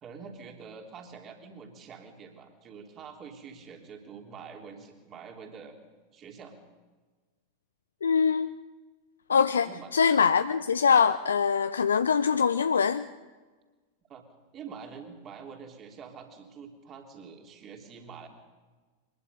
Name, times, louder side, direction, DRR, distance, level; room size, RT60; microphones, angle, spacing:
voice 1, 0.0-5.8 6.1-6.6 9.6-10.0 14.1-14.2 14.5-18.3, right 6 dB, 30° right, 3 dB, 3.5 m, -46 dB
voice 2, 8.0-8.5 9.3-13.0, left 6 dB, 70° left, 12 dB, 0.5 m, -23 dB
24.0 x 21.5 x 5.5 m, 1.3 s
figure-of-eight pair, 90°, 0 cm